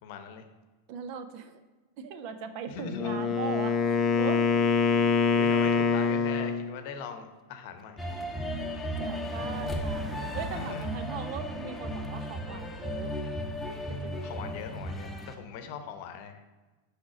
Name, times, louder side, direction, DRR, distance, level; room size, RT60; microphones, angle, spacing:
voice 1, 0.0-0.4 2.7-3.3 5.4-8.0 10.5-10.9 14.2-16.4, left 6 dB, 45° left, 8 dB, 0.9 m, -40 dB
voice 2, 0.9-1.6 2.0-4.5 8.5-8.6 9.0-13.1 13.9-14.4, right 7 dB, 45° right, 10 dB, 0.7 m, -39 dB
Wind instrument woodwind instrument, 2.8-6.7, left 5 dB, 25° left, 0.6 m, -25 dB
sound 1, 8.0-15.4, equal, 5° left, 0.9 m, -35 dB
6.3 x 5.1 x 6.0 m, 1.2 s
figure-of-eight pair, 90°, 0 cm